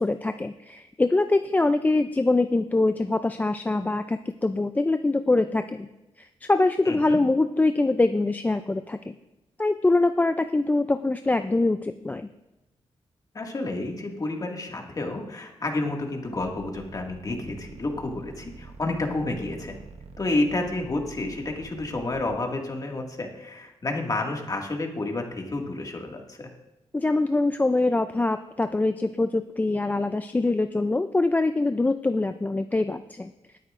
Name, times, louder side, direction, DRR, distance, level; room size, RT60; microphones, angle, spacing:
voice 1, 0.0-5.9 6.2-9.1 9.6-12.3 26.9-33.3, left 2 dB, 15° left, 8 dB, 0.4 m, -24 dB
voice 2, 6.9-7.2 13.3-19.7 20.2-26.5, left 2 dB, 35° left, 1 dB, 2.0 m, -30 dB
sound 1, 16.3-22.4, right 5 dB, 80° right, 0.8 m, -45 dB
20.5 x 9.2 x 2.5 m, 0.98 s
cardioid pair, 95°, 11 cm